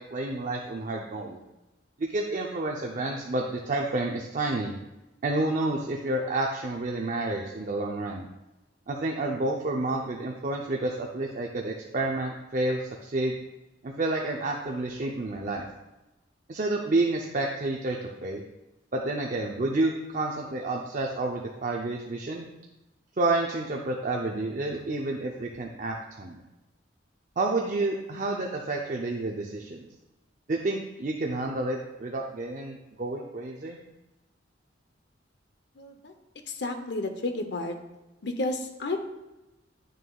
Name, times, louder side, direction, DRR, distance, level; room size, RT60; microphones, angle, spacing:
voice 1, 0.0-1.4 2.0-4.7 5.2-8.3 8.9-13.3 13.8-15.6 16.5-18.4 18.9-22.5 23.2-26.4 27.4-29.9 30.5-33.8, right 2 dB, 45° right, 0 dB, 0.6 m, -29 dB
voice 2, 35.8-36.1 36.5-37.8 38.2-39.0, left 2 dB, 60° left, 6 dB, 0.7 m, -31 dB
9.1 x 6.5 x 2.3 m, 1.0 s
head